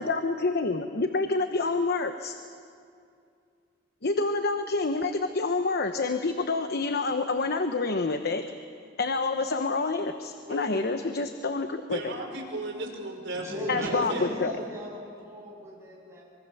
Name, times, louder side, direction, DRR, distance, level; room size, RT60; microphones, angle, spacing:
voice 1, 0.0-2.4 4.0-8.4 9.0-12.1 13.7-14.5, left 3 dB, 55° left, 7 dB, 1.0 m, -28 dB
voice 2, 10.5-11.0 11.9-14.4, right 1 dB, 70° right, 0 dB, 5.4 m, -36 dB
voice 3, 13.3-16.2, equal, 15° right, -5 dB, 7.4 m, -36 dB
25.0 x 24.0 x 7.1 m, 2.3 s
head